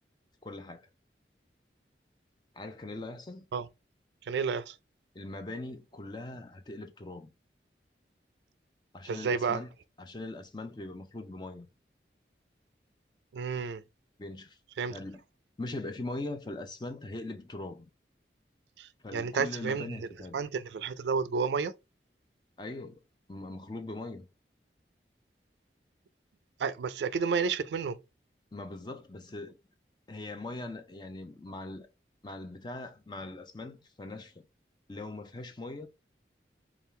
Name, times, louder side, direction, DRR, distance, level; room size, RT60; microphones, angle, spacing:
voice 1, 0.4-0.9 2.5-3.4 5.1-7.3 8.9-9.7 10.0-11.7 14.2-14.6 14.9-15.2 15.6-17.9 19.0-20.4 22.6-23.0 23.3-24.3 28.5-29.6 30.1-31.9 32.2-34.4 34.9-35.9, left 2 dB, 25° left, 0.5 m, -41 dB
voice 2, 4.3-4.8 9.1-9.6 13.3-13.8 14.8-15.0 18.8-20.0 20.3-21.7 26.6-28.0, right 5 dB, 80° right, 0.4 m, -31 dB
3.5 x 2.4 x 4.2 m
head